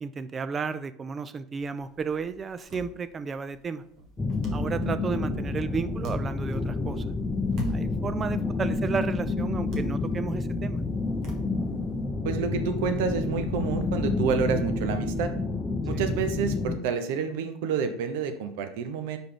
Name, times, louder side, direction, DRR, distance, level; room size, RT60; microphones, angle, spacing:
voice 1, 0.0-3.8 4.5-7.0 7.7-10.8 15.9-16.1, right 5 dB, 30° right, 13 dB, 0.5 m, -33 dB
sound 1, 1.6-12.0, right 2 dB, 55° right, 1.3 m, -44 dB
sound 2, 4.2-16.8, left 3 dB, 20° left, 0.8 m, -29 dB
voice 2, 12.2-15.3 15.9-19.2, right 6 dB, 75° right, 8 dB, 0.7 m, -29 dB
5.1 x 4.8 x 3.8 m, 0.67 s
hypercardioid pair, 85°, 0 cm